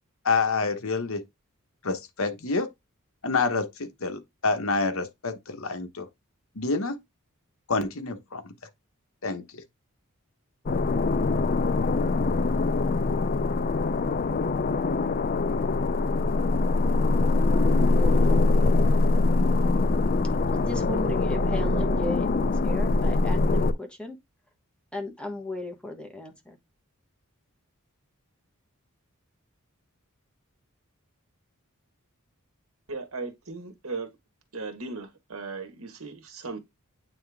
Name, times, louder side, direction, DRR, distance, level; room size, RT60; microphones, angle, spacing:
voice 1, 0.2-1.2 1.8-2.7 3.2-6.1 6.5-7.0 7.7-8.5 9.2-9.6, left 4 dB, 65° left, 1.2 m, -28 dB
sound 1, 10.7-23.7, left 3 dB, 40° left, 0.5 m, -23 dB
voice 2, 17.5-18.5 20.5-24.1 24.9-26.6, left 2 dB, 5° left, 1.3 m, -36 dB
voice 3, 32.9-34.1 34.5-36.6, right 3 dB, 70° right, 1.6 m, -37 dB
8.7 x 3.4 x 3.5 m
head